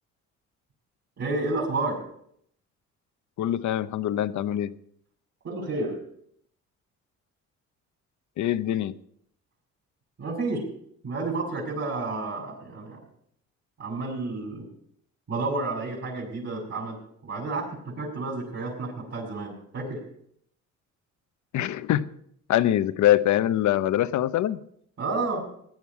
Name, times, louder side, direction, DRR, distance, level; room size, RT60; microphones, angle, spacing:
voice 1, 1.2-2.0 5.4-6.0 10.2-10.7 11.0-13.0 13.8-14.7 15.3-16.9 17.2-20.0 25.0-25.5, right 3 dB, 55° right, -6 dB, 5.9 m, -30 dB
voice 2, 3.4-4.7 8.4-8.9 21.5-22.1 22.5-24.6, left 12 dB, 75° left, 14 dB, 0.8 m, -24 dB
17.0 x 10.5 x 4.7 m, 0.69 s
cardioid pair, 90°, 30 cm